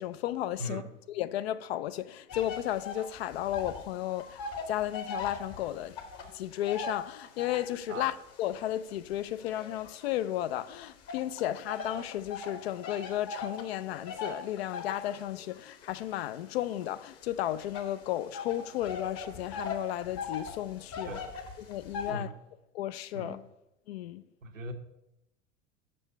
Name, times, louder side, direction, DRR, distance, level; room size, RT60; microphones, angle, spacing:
voice 1, 0.0-0.8 1.1-4.4 4.7-6.0 6.3-21.1 21.7-22.3 22.7-23.4 23.9-24.2, left 13 dB, 55° left, 0.4 m, -34 dB
voice 2, 0.6-0.9 7.9-8.1 21.1-21.3 22.1-22.3 23.1-23.4 24.4-24.7, right 1 dB, 80° right, 0.9 m, -39 dB
sound 1, 2.3-3.9 4.1-7.8 8.4-10.5 11.1-22.1, left 5 dB, 35° left, 1.1 m, -40 dB
6.2 x 5.4 x 5.4 m
figure-of-eight pair, 80°, 38 cm